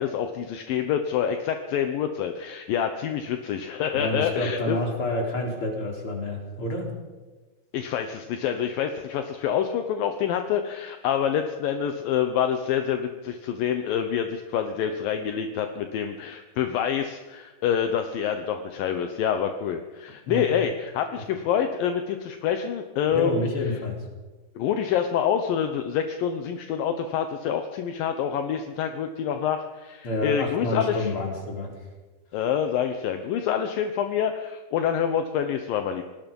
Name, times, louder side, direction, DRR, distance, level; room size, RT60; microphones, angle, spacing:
voice 1, 0.0-4.8 7.7-23.5 24.6-31.1 32.3-36.0, left 8 dB, 70° left, 6 dB, 2.3 m, -27 dB
voice 2, 3.9-6.9 20.3-20.5 21.1-21.2 23.1-24.0 30.0-31.7, left 1 dB, 30° left, 1 dB, 4.4 m, -29 dB
26.5 x 19.5 x 5.4 m, 1.2 s
omnidirectional pair, 5.2 m